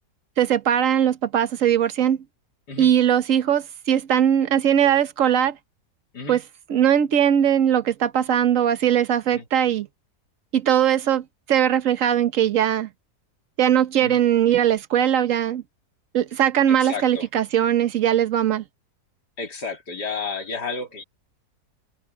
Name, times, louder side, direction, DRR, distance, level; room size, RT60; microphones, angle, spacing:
voice 1, 0.4-2.2 2.8-5.6 6.3-6.4 6.7-9.9 10.5-12.9 13.6-15.6 16.1-18.6, right 9 dB, 55° right, 1.2 m, -20 dB
voice 2, 16.7-17.3 19.4-21.0, left 4 dB, 90° left, 3.4 m, -32 dB
omnidirectional pair, 1.7 m